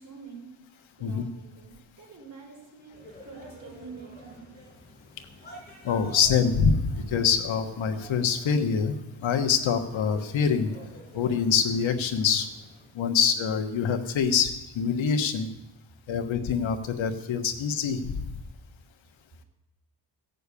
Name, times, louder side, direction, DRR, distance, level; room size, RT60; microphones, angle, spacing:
voice 1, 0.0-4.5, right 5 dB, 40° right, -2 dB, 5.8 m, -46 dB
sound 1, 2.9-12.9, left 1 dB, 20° left, 6.5 m, -50 dB
voice 2, 5.8-9.0 9.2-10.7 11.1-12.5 12.9-15.5 16.1-18.2, left 6 dB, 75° left, 7 dB, 1.4 m, -25 dB
16.5 x 6.9 x 8.4 m, 0.94 s
wide cardioid pair, 145°, 47 cm